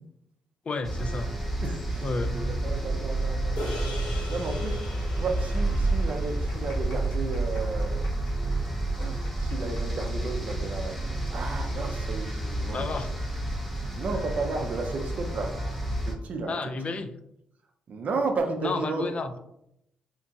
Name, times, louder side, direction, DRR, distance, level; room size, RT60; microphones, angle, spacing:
voice 1, 0.6-1.3 2.0-2.3 12.7-13.1 16.5-17.1 18.6-19.4, left 3 dB, 40° left, 8 dB, 0.3 m, -31 dB
sound 1, 0.8-16.1, right 2 dB, 5° left, 0.9 m, -30 dB
voice 2, 1.6-3.6 4.3-4.8 5.1-8.0 9.0-12.9 13.9-15.6 16.0-16.5 16.9-17.0 17.9-19.1, right 3 dB, 55° right, 4 dB, 0.5 m, -33 dB
sound 2, 3.6-8.1, left 1 dB, 85° left, 1.1 m, -41 dB
sound 3, 6.4-13.4 13.7-13.8 14.5-14.8, left 2 dB, 70° left, 1.1 m, -51 dB
2.9 x 2.5 x 2.6 m, 0.79 s
hypercardioid pair, 50°, 3 cm